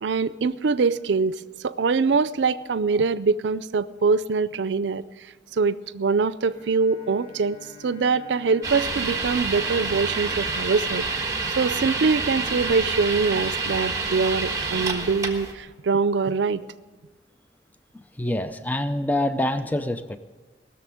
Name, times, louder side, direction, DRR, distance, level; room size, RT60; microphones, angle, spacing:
voice 1, 0.0-5.0 5.5-16.7, right 4 dB, 80° right, 16 dB, 0.5 m, -24 dB
Bowed string instrument, 6.4-12.1, left 5 dB, 70° left, 4.5 m, -48 dB
sound 1, 8.6-15.5, right 4 dB, 20° right, 1.3 m, -28 dB
voice 2, 17.9-20.2, left 1 dB, 10° left, 10 dB, 0.4 m, -26 dB
19.0 x 6.8 x 9.2 m, 1.4 s
head